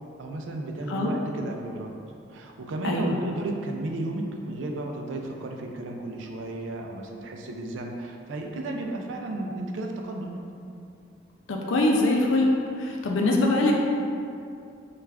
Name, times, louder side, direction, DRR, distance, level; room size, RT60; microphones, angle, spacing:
voice 1, 0.2-1.9 2.3-10.5, right 2 dB, 85° right, 2 dB, 0.4 m, -33 dB
voice 2, 2.8-3.2 11.5-12.5 12.8-13.7, left 2 dB, 90° left, 0 dB, 0.5 m, -23 dB
3.3 x 2.4 x 3.3 m, 2.5 s
head